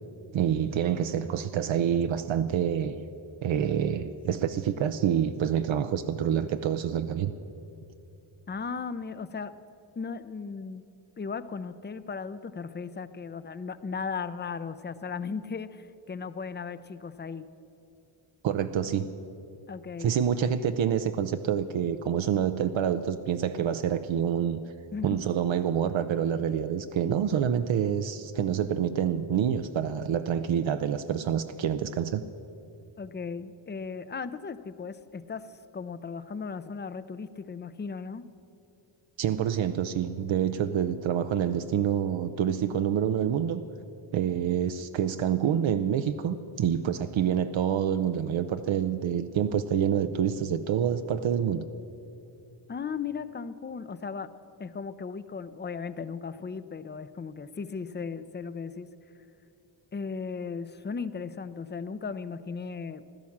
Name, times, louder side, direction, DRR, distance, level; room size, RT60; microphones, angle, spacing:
voice 1, 0.3-3.0 3.4-7.3 18.4-19.1 20.0-24.6 25.0-32.2 39.2-43.6 44.1-51.6, right 9 dB, 75° right, 9 dB, 0.7 m, -27 dB
voice 2, 8.5-9.5 10.0-10.9 11.2-17.4 19.7-20.1 24.9-25.2 33.0-35.5 35.7-38.2 52.7-54.3 54.6-58.9 59.9-63.1, left 5 dB, 25° left, 13 dB, 0.5 m, -36 dB
15.5 x 12.0 x 7.2 m, 2.8 s
wide cardioid pair, 125°, 47 cm